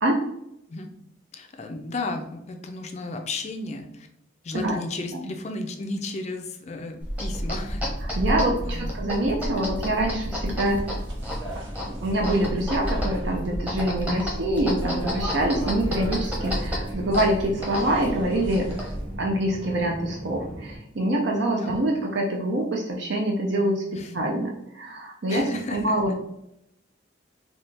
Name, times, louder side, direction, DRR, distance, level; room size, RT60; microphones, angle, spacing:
voice 1, 1.3-4.1 4.4-7.8 8.5-8.9 21.6-21.8 23.9-24.1 25.3-25.9, left 2 dB, 35° left, 5 dB, 0.4 m, -34 dB
sound 1, 6.9-20.8, right 1 dB, 45° right, 1.0 m, -41 dB
sound 2, 7.0-19.2, equal, 5° right, 0.8 m, -31 dB
voice 2, 8.2-10.8 12.0-18.7 19.2-26.1, right 1 dB, 60° right, 0 dB, 0.5 m, -25 dB
sound 3, 10.3-13.6 14.6-19.0, right 1 dB, 80° right, 1.3 m, -40 dB
4.2 x 2.3 x 3.2 m, 0.79 s
head